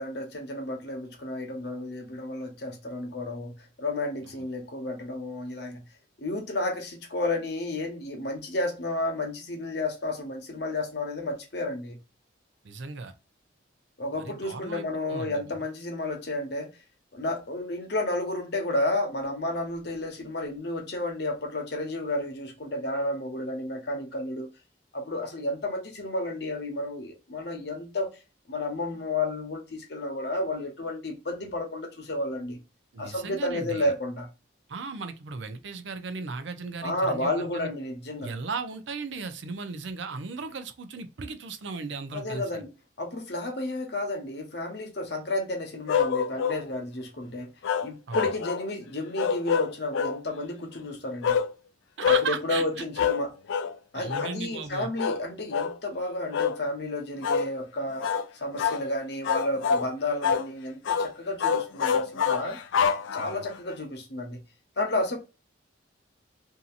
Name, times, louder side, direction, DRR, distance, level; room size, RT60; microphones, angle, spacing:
voice 1, 0.0-5.9 6.2-12.0 14.0-16.7 17.1-24.5 24.9-28.1 28.5-32.6 33.0-34.3 36.8-38.4 42.1-42.7 43.0-47.5 47.8-51.4 52.1-53.3 53.9-58.1 58.4-62.6 63.1-64.4 64.8-65.2, left 1 dB, 60° left, 0.9 m, -31 dB
voice 2, 12.6-13.1 14.2-15.4 32.9-33.9 34.7-37.7 38.2-42.6 48.1-48.3 52.0-52.8 53.9-54.9 63.2-63.5, right 4 dB, 75° right, 0.5 m, -36 dB
sound 1, 45.9-46.6 47.6-48.7 49.2-50.2 51.2-51.5 52.0-52.3 53.0-53.2 53.5-53.7 54.1-54.3 55.0-55.2 55.5-55.8 56.3-56.6 57.2-57.5 58.0-58.3 58.6-58.8 59.2-59.9 60.2-60.5 60.8-61.1 61.4-63.5, left 7 dB, 90° left, 0.4 m, -26 dB
2.7 x 2.6 x 2.4 m
head